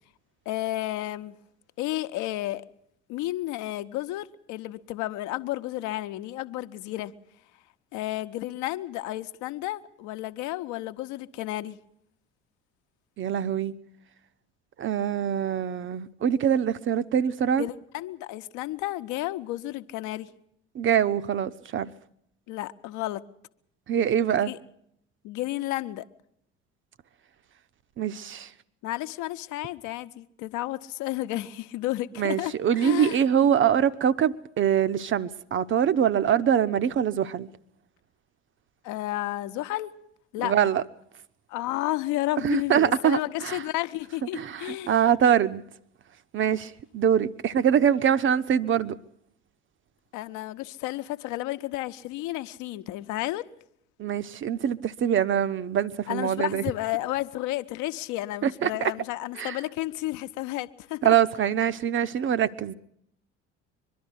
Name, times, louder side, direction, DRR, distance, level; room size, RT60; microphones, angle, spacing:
voice 1, 0.5-1.3 1.8-2.6 3.1-7.1 7.9-11.8 17.6-20.3 22.5-23.2 24.3-24.6 25.2-26.0 28.8-32.5 32.8-33.2 38.8-39.9 40.3-40.5 41.5-44.9 50.1-53.4 56.1-61.2, left 16 dB, 55° left, 1.0 m, -32 dB
voice 2, 13.2-13.7 14.8-17.7 20.7-21.9 23.9-24.5 28.0-28.5 32.2-37.5 40.4-40.8 42.4-43.6 44.3-45.6 46.3-49.0 54.0-56.6 58.4-58.9 59.4-59.6 61.0-62.7, right 9 dB, 35° right, 0.8 m, -24 dB
23.0 x 12.0 x 9.8 m
figure-of-eight pair, 55°, 36 cm